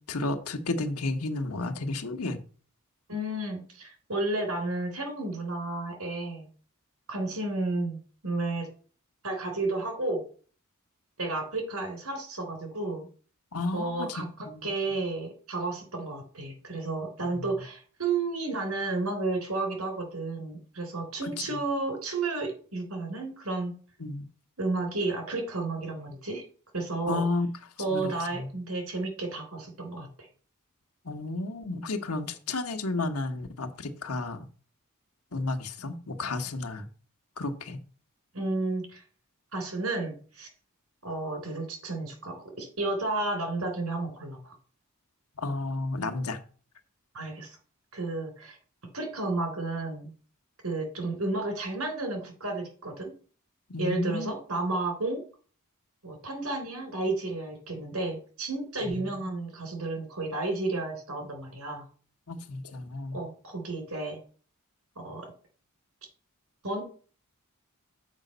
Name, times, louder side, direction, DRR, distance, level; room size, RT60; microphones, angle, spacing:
voice 1, 0.1-2.4 13.5-14.7 17.3-17.5 21.2-21.6 24.0-24.3 27.1-27.5 27.9-28.5 31.0-34.5 35.3-36.9 37.4-37.8 45.4-46.4 53.7-54.3 58.8-59.3 62.3-63.2, left 2 dB, 85° left, 1.2 m, -32 dB
voice 2, 3.1-6.5 7.1-8.0 8.2-8.7 9.2-10.2 11.2-13.1 13.7-23.7 24.6-26.4 26.7-27.2 27.8-30.3 38.3-39.0 39.5-40.5 41.0-44.6 47.1-47.6 47.9-48.6 48.9-50.1 50.6-53.1 53.8-55.2 56.0-61.9 63.1-64.2 65.0-65.3 66.6-66.8, right 2 dB, 85° right, 3.8 m, -32 dB
7.4 x 5.1 x 6.7 m
head